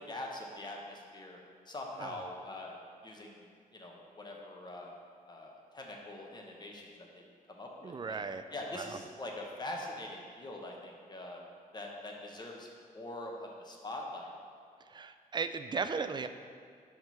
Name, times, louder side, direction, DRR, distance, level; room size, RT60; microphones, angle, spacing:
voice 1, 0.0-1.4 1.7-2.8 3.0-3.4 3.7-4.9 5.3-7.2 7.5-8.2 8.5-11.4 11.7-14.3, left 1 dB, 30° left, 0 dB, 1.0 m, -43 dB
voice 2, 7.8-8.4 8.8-8.9 14.9-16.3, right 5 dB, 30° right, 10 dB, 0.3 m, -36 dB
5.6 x 3.7 x 5.7 m, 2.1 s
cardioid pair, 80°, 15 cm